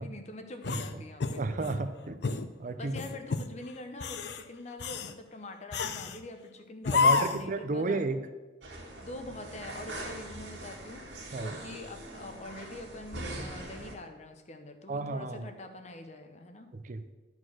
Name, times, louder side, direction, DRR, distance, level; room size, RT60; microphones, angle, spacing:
voice 1, 0.0-1.4 2.8-8.1 9.0-16.7, left 2 dB, 40° left, 6 dB, 0.8 m, -44 dB
sound 1, 0.6-1.8 2.2-2.5 2.9-3.5 3.9-4.4 4.8-5.1 5.7-6.2 6.8-7.5, left 4 dB, 65° left, 0.5 m, -29 dB
voice 2, 1.4-2.2 2.6-2.9 6.9-8.2 11.3-11.5 14.9-15.5 16.7-17.0, right 3 dB, 45° right, 9 dB, 0.5 m, -32 dB
sound 2, 8.6-14.0, right 1 dB, 80° right, 2.1 m, -42 dB
11.0 x 4.5 x 6.1 m, 1.2 s
head